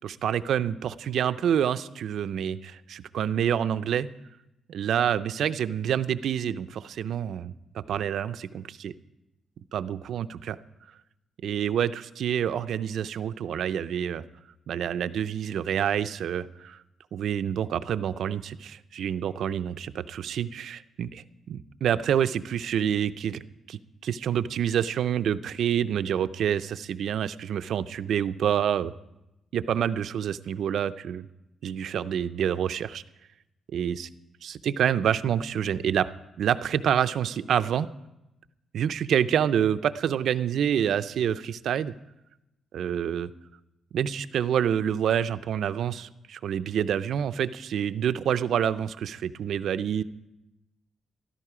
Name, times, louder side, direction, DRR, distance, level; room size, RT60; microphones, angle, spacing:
voice 1, 0.0-4.1 4.7-8.9 9.7-10.6 11.4-14.2 14.7-16.8 17.1-23.4 23.7-28.9 29.5-31.3 31.6-33.0 33.7-34.1 34.4-36.1 36.4-37.9 38.7-41.9 42.7-43.3 43.9-50.0, right 9 dB, 70° right, 13 dB, 0.5 m, -27 dB
14.0 x 13.0 x 4.9 m, 0.93 s
cardioid pair, 125°, 0 cm